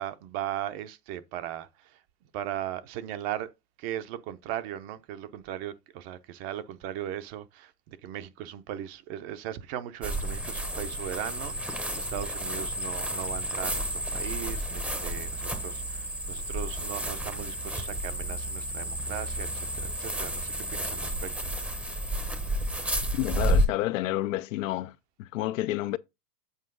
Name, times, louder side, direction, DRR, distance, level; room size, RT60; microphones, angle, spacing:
voice 1, 0.0-2.0 2.3-3.5 3.8-21.5, right 11 dB, 40° right, 0.8 m, -38 dB
sound 1, 10.0-23.7, right 1 dB, 5° right, 0.8 m, -31 dB
voice 2, 23.1-24.9 25.2-26.0, left 16 dB, 55° left, 0.5 m, -29 dB
8.2 x 4.5 x 3.8 m
hypercardioid pair, 130°, 49 cm